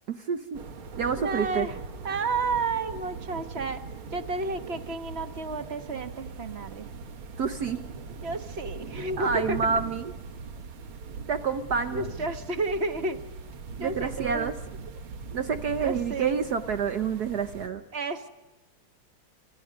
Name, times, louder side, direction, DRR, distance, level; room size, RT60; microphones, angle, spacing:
voice 1, 0.1-0.6 1.0-1.7 7.4-7.8 9.2-10.1 11.3-12.0 13.8-14.5 15.3-17.8, right 6 dB, 55° right, 8 dB, 1.4 m, -28 dB
sound 1, 0.5-17.7, right 5 dB, 85° right, 2.4 m, -40 dB
voice 2, 1.2-1.8 2.0-3.8 4.1-6.9 8.2-9.7 11.9-13.2 13.8-14.5 15.8-16.5 17.9-18.3, right 3 dB, 35° right, 8 dB, 1.5 m, -31 dB
29.5 x 27.5 x 5.3 m, 1.1 s
omnidirectional pair, 2.3 m